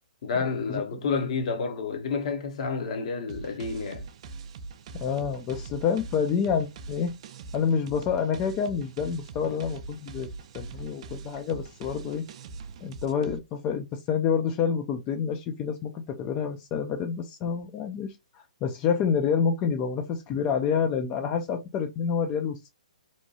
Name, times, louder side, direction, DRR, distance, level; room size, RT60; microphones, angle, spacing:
voice 1, 0.2-4.1, left 4 dB, 50° left, 0.7 m, -29 dB
sound 1, 3.3-13.4, right 4 dB, 45° right, 0.4 m, -42 dB
voice 2, 4.9-7.1 7.5-12.2 12.8-22.6, left 7 dB, 25° left, 0.3 m, -28 dB
2.8 x 2.2 x 2.7 m
figure-of-eight pair, 125°, 4 cm